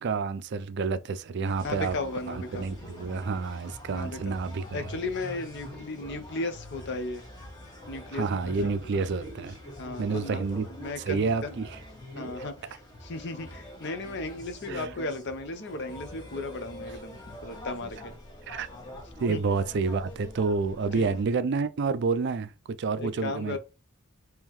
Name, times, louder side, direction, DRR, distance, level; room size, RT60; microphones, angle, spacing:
voice 1, 0.0-2.0 2.3-4.8 8.1-9.6 10.0-10.6 11.1-11.7 14.7-14.9 18.5-18.7 19.2-23.6, right 4 dB, 55° right, 0.4 m, -29 dB
sound 1, 1.4-21.2, left 1 dB, 20° left, 1.3 m, -44 dB
voice 2, 1.6-2.7 3.9-4.4 4.7-7.2 7.9-8.7 9.8-11.5 12.2-18.1 19.3-19.4 20.9-21.1 23.0-23.6, left 2 dB, 55° left, 0.7 m, -35 dB
3.7 x 3.0 x 3.0 m
head